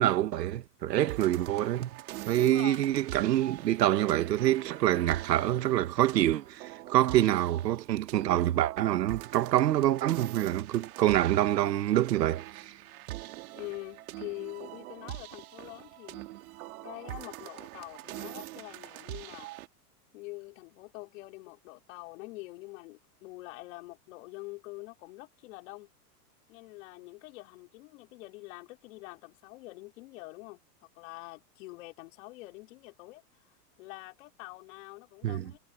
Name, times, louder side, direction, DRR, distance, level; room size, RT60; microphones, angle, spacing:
voice 1, 0.0-1.9 2.3-12.7 35.2-35.5, right 13 dB, 90° right, 1.6 m, -26 dB
sound 1, 1.0-19.7, right 17 dB, 60° right, 2.4 m, -44 dB
voice 2, 2.4-2.9 7.2-7.5 13.5-16.3 16.8-19.5 20.1-25.9 26.5-33.2 33.8-35.6, left 22 dB, 55° left, 4.9 m, -45 dB
supercardioid pair, 150°, 48 cm